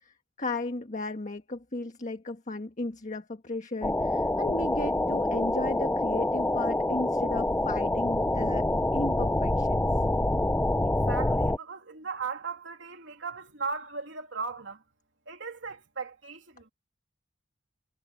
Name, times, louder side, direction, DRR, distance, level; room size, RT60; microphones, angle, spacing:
voice 1, 0.0-8.7 8.9-9.9, left 2 dB, 40° left, 1.5 m, -35 dB
sound 1, 3.8-11.6, left 1 dB, 10° left, 0.5 m, -26 dB
voice 2, 11.1-14.8 15.3-16.7, right 5 dB, 70° right, 3.2 m, -37 dB
head